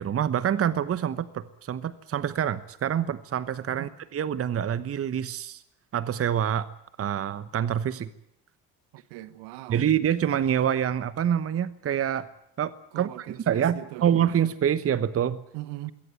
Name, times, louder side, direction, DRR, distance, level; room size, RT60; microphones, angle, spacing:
voice 1, 0.0-5.6 5.9-6.7 7.0-8.1 9.7-12.3 12.6-15.4, right 9 dB, 30° right, 1.1 m, -26 dB
voice 2, 8.9-9.8 12.9-14.1 15.5-15.9, right 16 dB, 60° right, 1.4 m, -40 dB
22.0 x 17.5 x 9.2 m
figure-of-eight pair, 60°, 46 cm